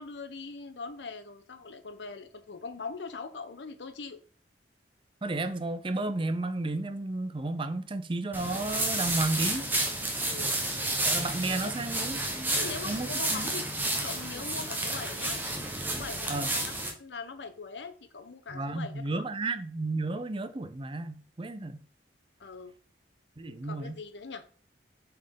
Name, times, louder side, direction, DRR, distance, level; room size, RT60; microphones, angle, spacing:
voice 1, 0.0-4.2 10.3-10.6 11.6-11.7 12.6-13.7 14.0-15.4 15.9-19.3 22.4-22.7 23.5-24.4, left 4 dB, 80° left, 0.8 m, -41 dB
voice 2, 5.2-9.7 11.0-13.5 16.3-16.5 18.5-21.8 23.4-24.0, right 2 dB, 30° right, 0.6 m, -33 dB
sound 1, 8.3-16.9, right 1 dB, 10° right, 1.0 m, -31 dB
6.2 x 4.5 x 3.7 m
head